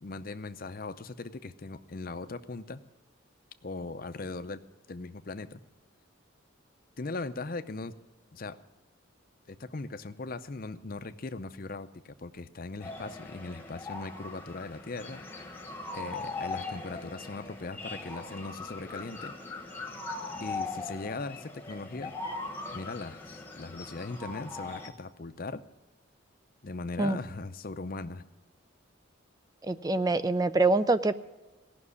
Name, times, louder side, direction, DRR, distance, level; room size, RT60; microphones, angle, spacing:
voice 1, 0.0-2.8 3.6-4.6 4.9-5.6 7.0-7.9 8.3-8.6 9.5-15.2 15.9-19.4 20.4-22.1 22.7-23.2 23.6-25.6 26.6-28.2, left 3 dB, 45° left, 10 dB, 0.6 m, -39 dB
sound 1, 12.8-24.9, left 3 dB, 10° left, 1.2 m, -40 dB
voice 2, 29.6-31.1, right 2 dB, 20° right, 14 dB, 0.4 m, -25 dB
17.0 x 6.1 x 9.7 m, 1.2 s
head